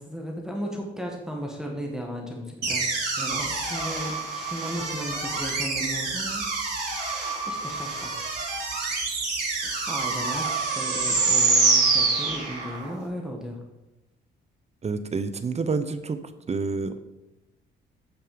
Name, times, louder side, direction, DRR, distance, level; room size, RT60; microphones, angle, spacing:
voice 1, 0.0-6.4 7.5-8.5 9.6-13.6, equal, 5° right, 0 dB, 2.0 m, -35 dB
sound 1, 2.6-12.9, right 3 dB, 55° right, 3.9 m, -26 dB
sound 2, 3.5-12.8, right 3 dB, 65° left, 3.0 m, -37 dB
voice 2, 14.8-17.0, right 4 dB, 35° right, 11 dB, 0.8 m, -29 dB
9.3 x 6.8 x 5.1 m, 0.98 s
cardioid pair, 90°, 20 cm